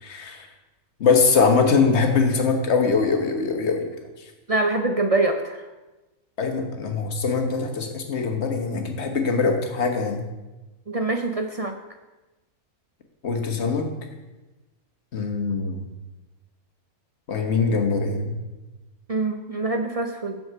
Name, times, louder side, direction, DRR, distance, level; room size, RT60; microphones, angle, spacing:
voice 1, 0.0-0.5 1.0-3.8 6.4-10.2 13.2-13.8 15.1-15.8 17.3-18.4, left 4 dB, 50° left, 4 dB, 1.5 m, -22 dB
voice 2, 4.5-5.6 10.9-11.7 19.1-20.4, right 2 dB, 50° right, 5 dB, 0.4 m, -24 dB
7.7 x 7.0 x 6.7 m, 1.1 s
omnidirectional pair, 1.5 m